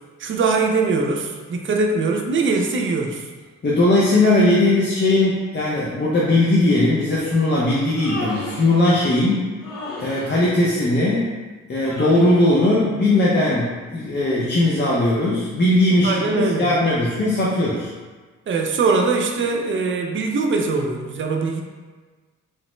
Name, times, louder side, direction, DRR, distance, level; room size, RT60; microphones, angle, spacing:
voice 1, 0.2-3.2 16.0-16.7 18.5-21.6, right 4 dB, 40° right, 2 dB, 0.5 m, -22 dB
voice 2, 3.6-9.5 10.0-11.3 11.7-17.9, left 1 dB, 35° left, -6 dB, 0.6 m, -19 dB
Human voice, 7.8-8.8 9.6-10.3 11.8-12.5, left 1 dB, 80° left, 0.9 m, -33 dB
3.1 x 2.0 x 3.1 m, 1.4 s
supercardioid pair, 55°, 32 cm